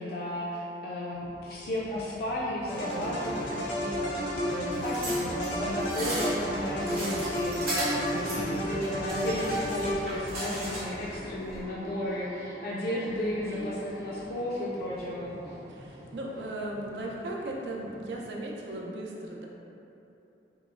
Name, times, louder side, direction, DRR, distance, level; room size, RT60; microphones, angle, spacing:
voice 1, 0.0-15.6, left 1 dB, 55° left, -6 dB, 0.3 m, -34 dB
sound 1, 1.1-18.5, equal, 15° right, 0.4 m, -45 dB
sound 2, 2.7-10.4, equal, 90° left, 0.9 m, -32 dB
sound 3, 4.7-11.1 11.5-11.6, right 1 dB, 55° right, 0.9 m, -36 dB
voice 2, 15.7-19.5, right 1 dB, 70° right, -2 dB, 0.5 m, -37 dB
5.4 x 2.0 x 2.4 m, 2.9 s
head